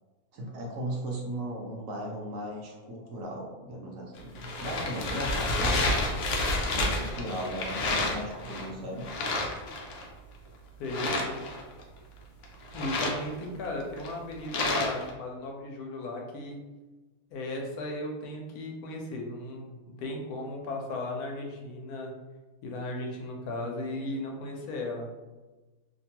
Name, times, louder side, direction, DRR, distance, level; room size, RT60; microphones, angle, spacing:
voice 1, 0.3-6.0 6.7-9.1, right 1 dB, 65° right, -2 dB, 0.9 m, -36 dB
sound 1, 4.2-8.7 9.0-10.1 10.9-11.8 12.4-15.1, left 2 dB, 65° left, 0.7 m, -30 dB
voice 2, 10.8-11.4 12.7-16.7 17.3-22.1 22.6-25.1, left 2 dB, 85° left, 1 dB, 1.1 m, -36 dB
2.7 x 2.2 x 2.8 m, 1.2 s
omnidirectional pair, 1.6 m